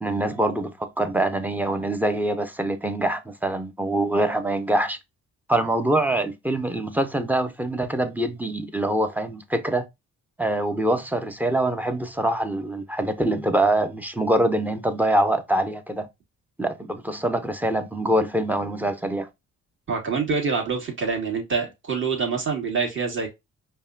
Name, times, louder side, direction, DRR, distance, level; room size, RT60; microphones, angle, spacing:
voice 1, 0.0-5.0 5.5-9.9 10.4-16.1 16.6-19.3, right 1 dB, 5° right, 0.6 m, -24 dB
voice 2, 19.9-23.3, right 5 dB, 40° right, 1.8 m, -26 dB
5.3 x 2.2 x 2.4 m
cardioid pair, 90°, 30 cm